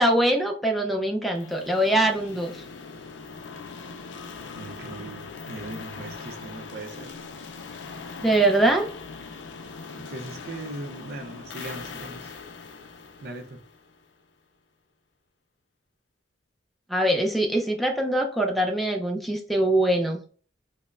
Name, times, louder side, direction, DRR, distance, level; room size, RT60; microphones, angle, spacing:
voice 1, 0.0-2.5 8.2-8.9 16.9-20.2, right 1 dB, ahead, 0.5 m, -23 dB
sound 1, 1.4-14.2, left 4 dB, 70° left, 0.4 m, -41 dB
voice 2, 4.5-7.1 10.0-12.3 13.2-13.6, right 2 dB, 55° right, 0.6 m, -39 dB
5.2 x 2.1 x 2.4 m
head